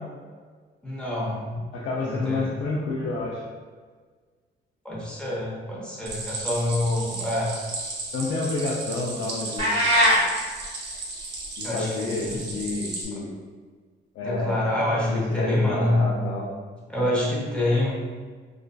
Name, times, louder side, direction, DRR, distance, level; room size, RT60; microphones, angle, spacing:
voice 1, 0.8-1.7 2.0-2.5 4.8-7.5 11.6-11.9 12.2-12.4 13.1-13.2 14.2-16.0 16.9-17.9, left 1 dB, 5° left, -7 dB, 0.8 m, -26 dB
voice 2, 1.7-3.4 8.1-9.7 11.6-13.3 14.2-14.7 15.1-16.5, left 3 dB, 75° left, -4 dB, 0.4 m, -29 dB
Stream, 6.1-13.1, right 2 dB, 60° right, 0.7 m, -35 dB
sound 1, 9.6-10.2, equal, 30° right, 0.9 m, -19 dB
2.4 x 2.4 x 2.2 m, 1.5 s
cardioid pair, 90°, 20 cm